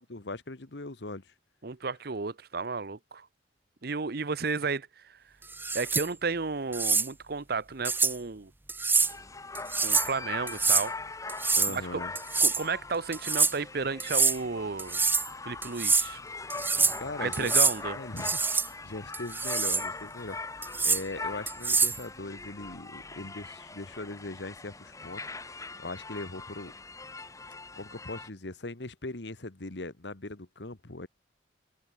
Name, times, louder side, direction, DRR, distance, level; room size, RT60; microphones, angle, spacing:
voice 1, 0.0-1.3 11.6-12.1 17.0-17.6 18.0-18.4 18.6-20.4 20.8-26.7 27.8-31.1, left 2 dB, 70° left, 1.6 m, -40 dB
voice 2, 1.6-3.3 3.8-5.2 5.7-8.5 9.8-10.9 11.7-12.0 12.4-15.0 15.4-16.2 17.2-18.0, right 4 dB, 55° right, 0.9 m, -33 dB
sound 1, 5.5-6.1 6.7-7.1 7.9-8.2 8.7-9.1 9.6-10.1 10.5-10.9 11.3-11.8 12.2-12.6 13.1-13.5 14.0-14.4 14.8-15.3 15.6-16.1 16.5-17.0 17.3-17.8 18.2-18.7 19.1-19.9 20.6-21.0 21.5-22.0, right 4 dB, 10° right, 0.8 m, -25 dB
sound 2, 9.0-28.3, left 3 dB, 20° left, 1.4 m, -41 dB
open air
head